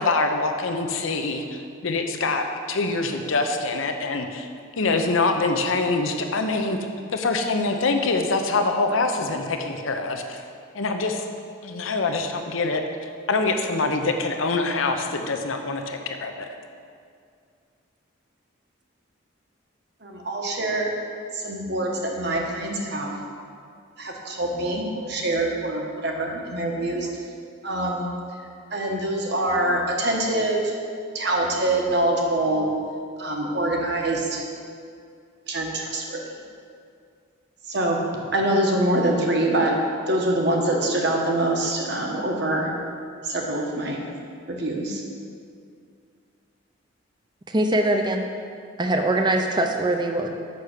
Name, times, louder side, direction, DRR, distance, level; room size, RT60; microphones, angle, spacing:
voice 1, 0.0-4.5 4.8-6.8 7.1-10.4 10.7-11.2 11.6-12.8 13.3-16.5, left 3 dB, 80° left, 5 dB, 0.7 m, -24 dB
voice 2, 20.0-20.9 21.3-23.1 24.0-27.1 27.6-28.1 28.7-30.8 31.1-32.7 33.2-34.4 35.5-36.2 37.7-38.0 38.3-39.7 40.1-42.7 43.2-44.1 44.5-45.0, right 1 dB, 55° right, 0 dB, 1.1 m, -24 dB
voice 3, 47.5-48.3 48.8-50.3, right 1 dB, 20° right, 4 dB, 0.5 m, -22 dB
6.7 x 5.7 x 6.5 m, 2.3 s
head